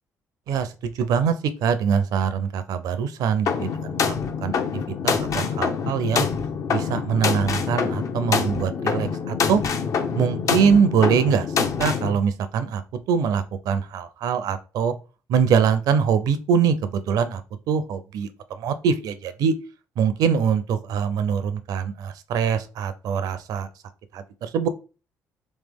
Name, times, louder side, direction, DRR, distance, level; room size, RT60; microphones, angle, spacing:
voice 1, 0.5-1.3 1.6-4.1 4.4-4.6 5.0-6.3 6.7-9.6 10.1-12.8 13.1-14.9 15.3-17.4 17.7-19.5 20.0-23.7 24.1-24.7, right 6 dB, 75° right, 12 dB, 0.6 m, -23 dB
sound 1, 3.5-12.1, left 6 dB, 55° left, 0.8 m, -25 dB
3.3 x 3.2 x 3.5 m, 0.33 s
supercardioid pair, 60°, 6 cm